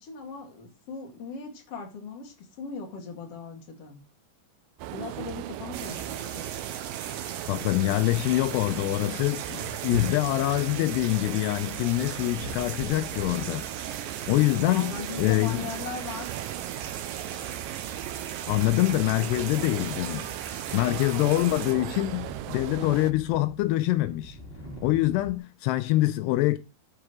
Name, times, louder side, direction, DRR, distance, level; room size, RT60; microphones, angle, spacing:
voice 1, 0.0-4.0 4.9-6.4 14.6-16.3, left 5 dB, 40° left, 2.9 m, -39 dB
sound 1, 4.8-23.1, right 13 dB, 90° right, 2.0 m, -37 dB
sound 2, 5.7-21.7, right 7 dB, 65° right, 2.6 m, -38 dB
voice 2, 7.5-13.7 14.3-14.9 15.2-15.7 18.5-20.3 20.7-24.4 24.8-26.6, left 17 dB, 85° left, 2.7 m, -25 dB
sound 3, 21.9-25.4, equal, 20° left, 1.8 m, -48 dB
9.8 x 4.8 x 6.2 m
omnidirectional pair, 4.7 m